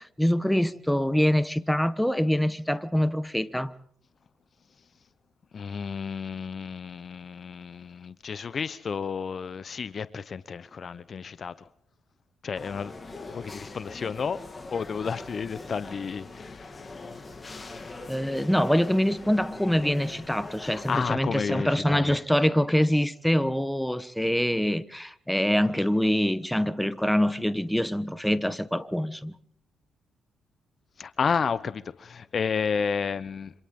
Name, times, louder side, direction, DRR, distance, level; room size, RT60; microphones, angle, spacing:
voice 1, 0.0-3.7 18.1-29.3, equal, 5° left, 1.2 m, -25 dB
voice 2, 5.5-11.7 12.4-12.9 13.3-14.4 14.7-17.1 20.6-22.1 31.0-33.5, left 6 dB, 50° left, 0.9 m, -31 dB
sound 1, 12.5-21.1, left 3 dB, 30° left, 2.9 m, -42 dB
27.5 x 26.0 x 3.8 m
supercardioid pair, 55°, 0 cm